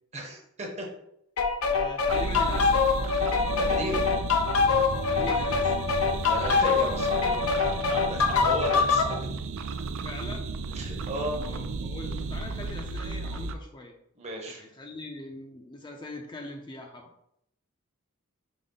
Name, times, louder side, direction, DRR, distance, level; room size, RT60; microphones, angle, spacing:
voice 1, 0.1-0.9 3.6-4.0 6.3-9.2 10.7-11.4 14.2-14.6, right 1 dB, 30° right, 1 dB, 0.8 m, -34 dB
sound 1, 1.4-9.1, left 5 dB, 85° left, 0.5 m, -24 dB
voice 2, 1.7-2.7 5.0-5.7 10.0-10.5 11.4-13.9 14.5-17.1, left 2 dB, 20° left, 2 dB, 0.4 m, -41 dB
sound 2, 2.1-13.5, right 3 dB, 65° right, 0.3 m, -34 dB
5.2 x 2.1 x 3.7 m, 0.75 s
head